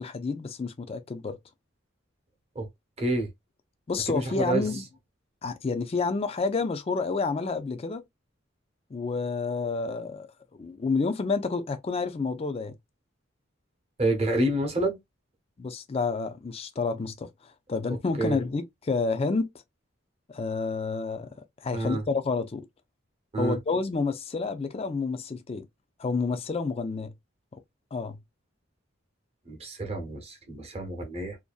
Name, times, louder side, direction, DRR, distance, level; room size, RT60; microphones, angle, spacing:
voice 1, 0.0-1.4 3.9-4.8 5.4-8.0 8.9-10.3 10.6-12.7 15.6-19.5 20.3-21.3 21.6-22.7 23.4-25.7 26.0-27.1 27.9-28.2, left 4 dB, 30° left, 0.3 m, -29 dB
voice 2, 3.0-3.3 4.1-4.6 14.0-15.0 18.2-18.4 21.7-22.0 23.3-23.6 29.5-31.4, right 1 dB, 30° right, 0.8 m, -28 dB
2.6 x 2.2 x 2.3 m
head